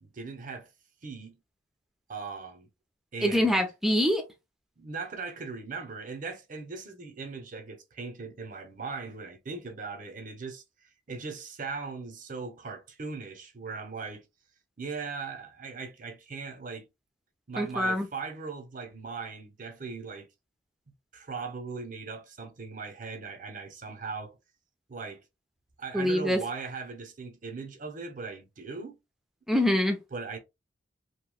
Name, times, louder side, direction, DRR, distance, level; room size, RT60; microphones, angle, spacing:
voice 1, 0.0-0.7 1.0-1.3 2.1-2.7 3.1-3.6 4.8-14.2 14.8-16.9 17.5-20.3 21.1-24.4 24.9-25.2 25.8-29.0 30.1-30.4, right 4 dB, 50° right, 0.7 m, -39 dB
voice 2, 3.2-4.2 17.6-18.1 25.9-26.4 29.5-30.0, left 1 dB, ahead, 0.6 m, -24 dB
3.0 x 2.7 x 2.2 m
head